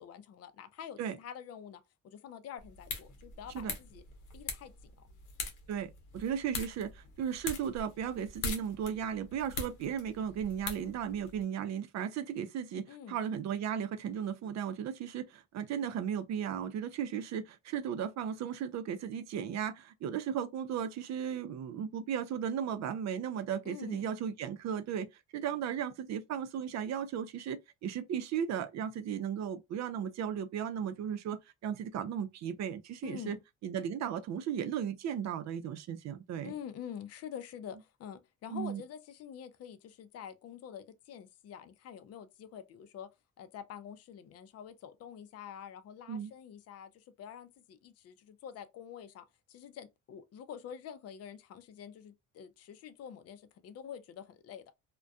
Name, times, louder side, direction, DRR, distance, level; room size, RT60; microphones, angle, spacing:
voice 1, 0.0-4.0 4.3-5.1 12.9-13.2 23.6-24.1 33.0-33.4 36.4-43.1 43.4-54.6, left 8 dB, 55° left, 0.5 m, -47 dB
sound 1, 2.6-11.4, left 4 dB, 85° left, 0.8 m, -43 dB
voice 2, 5.7-25.1 25.3-33.4 33.6-36.5 38.5-38.8 46.1-46.3, right 8 dB, 65° right, 0.5 m, -36 dB
2.3 x 2.2 x 2.6 m
cardioid pair, 90°, 30 cm